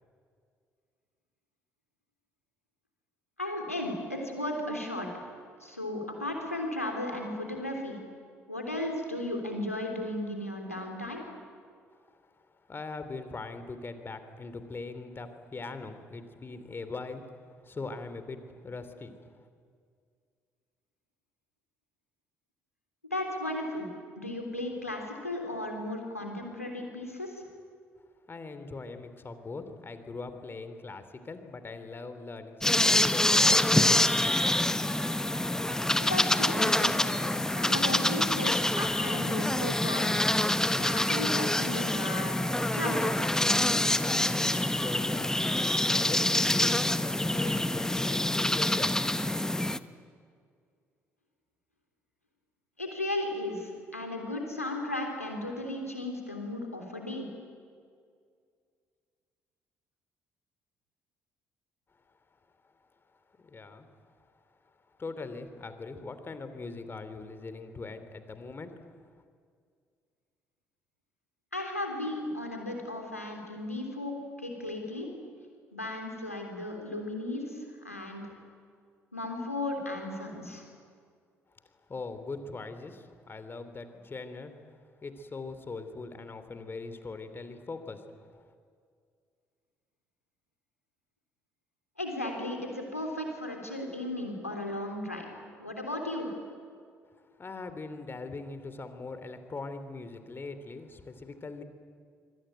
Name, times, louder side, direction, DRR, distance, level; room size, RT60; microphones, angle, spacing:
voice 1, 3.4-5.1 5.6-8.0 8.5-11.2 23.1-23.9 24.2-27.4 36.0-37.1 37.5-40.2 40.8-43.2 52.8-57.3 71.5-75.1 75.7-78.2 79.1-80.6 92.0-96.3, left 1 dB, 90° left, 2 dB, 3.3 m, -35 dB
voice 2, 12.7-17.2 17.6-19.2 28.3-34.6 43.7-48.9 63.4-63.9 65.0-69.0 81.9-84.5 85.0-88.4 97.4-101.6, left 3 dB, 30° left, 10 dB, 3.1 m, -41 dB
sound 1, 32.6-49.8, left 1 dB, 5° left, 1.1 m, -26 dB
25.5 x 24.0 x 9.3 m, 2.1 s
figure-of-eight pair, 45°, 8 cm